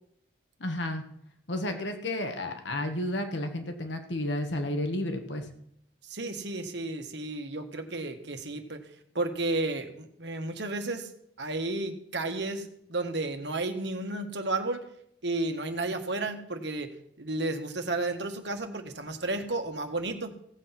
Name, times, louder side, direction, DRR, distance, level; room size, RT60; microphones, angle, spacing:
voice 1, 0.6-1.0 1.5-5.4, left 1 dB, 75° left, 6 dB, 1.4 m, -32 dB
voice 2, 6.0-8.9 9.1-11.1 11.4-14.8 15.2-20.4, right 2 dB, 65° right, 5 dB, 1.6 m, -32 dB
16.5 x 7.7 x 5.9 m, 0.71 s
head